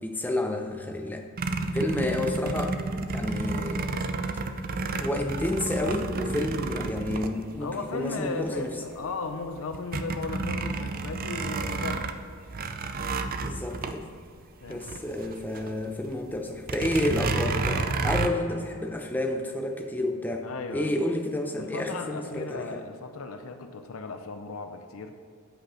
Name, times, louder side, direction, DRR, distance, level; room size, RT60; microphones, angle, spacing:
voice 1, 0.0-1.3 1.7-3.8 5.0-8.7 13.4-14.1 14.7-22.8, left 1 dB, 10° left, 3 dB, 0.7 m, -30 dB
sound 1, 1.4-8.0 8.6-8.7 9.0-15.7 16.0-16.1 16.6-18.3, right 3 dB, 40° right, 0.5 m, -31 dB
voice 2, 7.6-12.4 14.6-15.1 20.4-21.0 21.6-25.2, left 3 dB, 70° left, 6 dB, 0.6 m, -36 dB
8.9 x 5.2 x 5.6 m, 2.4 s
head